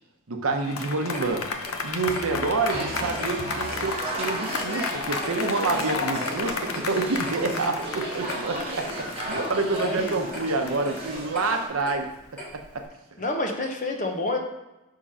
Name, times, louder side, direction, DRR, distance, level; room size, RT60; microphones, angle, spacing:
voice 1, 0.3-1.5 1.8-12.1, right 3 dB, 80° right, 4 dB, 0.8 m, -27 dB
sound 1, 0.6-12.0, left 4 dB, 85° left, 0.7 m, -33 dB
Clock, 1.1-12.8, left 1 dB, 10° left, 1.6 m, -43 dB
sound 2, 2.7-11.7, right 1 dB, 25° right, 1.0 m, -34 dB
voice 2, 7.4-7.7 9.8-10.1 13.2-14.4, left 2 dB, 35° left, 3 dB, 0.8 m, -29 dB
4.9 x 3.7 x 5.4 m, 1.0 s
head